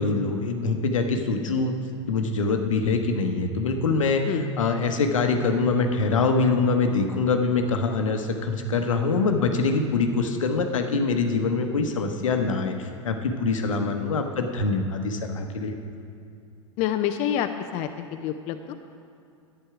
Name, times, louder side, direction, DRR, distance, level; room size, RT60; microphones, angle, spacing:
voice 1, 0.0-1.7 2.1-15.8, left 4 dB, 80° left, 5 dB, 1.0 m, -24 dB
voice 2, 16.8-18.7, left 10 dB, 45° left, 7 dB, 0.6 m, -27 dB
10.5 x 9.5 x 4.9 m, 2.6 s
hypercardioid pair, 95°, 16 cm